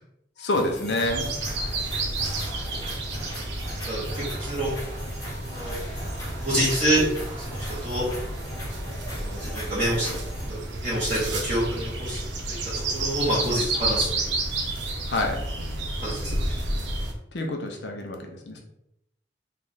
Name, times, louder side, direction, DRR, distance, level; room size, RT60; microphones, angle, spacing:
voice 1, 0.4-1.3 5.3-5.6 5.9-6.2 15.1-15.4 17.3-18.6, left 2 dB, 80° left, 3 dB, 0.7 m, -28 dB
sound 1, 0.5-10.5, equal, 20° left, 0.8 m, -39 dB
sound 2, 1.0-17.1, right 2 dB, 85° right, 0.7 m, -31 dB
voice 2, 3.8-4.7 5.5-5.8 6.4-7.0 7.4-8.0 9.2-10.1 10.5-12.2 12.5-14.3 16.0-16.5, right 1 dB, 35° right, -10 dB, 1.1 m, -27 dB
3.2 x 2.4 x 4.0 m, 0.80 s
head